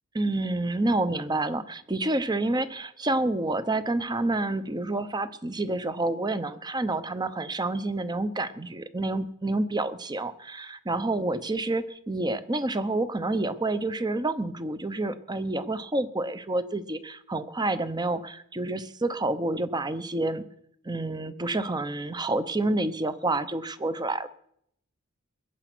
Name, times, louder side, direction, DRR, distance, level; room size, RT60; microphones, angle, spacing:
voice 1, 0.1-20.4 20.8-24.3, right 2 dB, 20° right, 13 dB, 0.8 m, -28 dB
21.5 x 9.1 x 6.1 m, 0.70 s
head